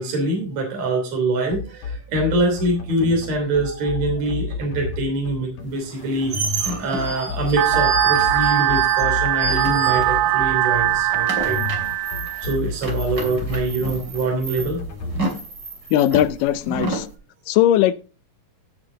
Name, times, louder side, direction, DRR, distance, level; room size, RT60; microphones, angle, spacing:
voice 1, 0.0-11.8 12.4-14.8, right 2 dB, 50° right, 4.2 m, -24 dB
sound 1, 1.5-15.2, left 4 dB, 55° left, 3.0 m, -31 dB
sound 2, 5.8-10.5 10.7-17.1, right 2 dB, 30° right, 3.1 m, -30 dB
sound 3, 7.6-12.6, right 13 dB, 85° right, 1.5 m, -20 dB
voice 2, 15.9-17.1 17.5-17.9, left 12 dB, 80° left, 2.2 m, -18 dB
16.0 x 7.2 x 3.8 m
omnidirectional pair, 4.1 m